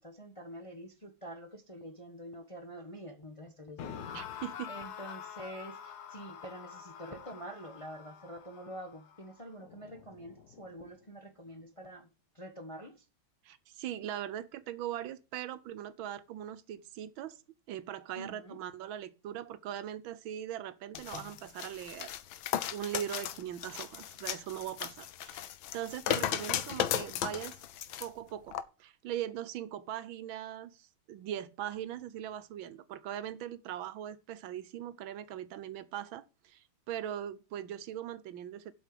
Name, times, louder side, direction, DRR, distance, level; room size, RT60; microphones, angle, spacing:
voice 1, 0.0-12.1 12.3-13.0 18.2-18.6, equal, 25° left, 0.8 m, -47 dB
sound 1, 3.8-10.9, left 8 dB, 60° left, 1.3 m, -47 dB
voice 2, 4.1-4.7 13.4-17.4 17.7-22.1 22.7-27.6 28.0-38.7, right 11 dB, 80° right, 1.5 m, -40 dB
sound 2, 20.9-28.1 28.5-28.6, left 11 dB, 90° left, 1.6 m, -36 dB
8.1 x 5.5 x 7.6 m
omnidirectional pair, 2.2 m